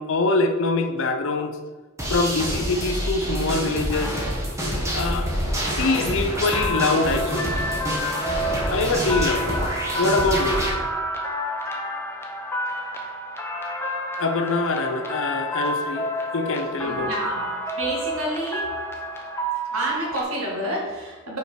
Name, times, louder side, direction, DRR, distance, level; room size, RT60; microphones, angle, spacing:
voice 1, 0.0-1.5 2.1-4.2 4.9-5.3 5.8-7.5 8.7-9.6 10.0-10.7 14.2-16.0 16.3-17.1, left 3 dB, 60° left, 7 dB, 0.6 m, -24 dB
sound 1, 2.0-10.7, equal, 15° right, 1.1 m, -27 dB
sound 2, 6.5-20.2, equal, 10° left, 0.6 m, -29 dB
voice 2, 16.8-17.4 17.8-18.7 19.7-21.4, right 1 dB, 60° right, -3 dB, 1.9 m, -29 dB
5.2 x 4.5 x 5.0 m, 1.3 s
head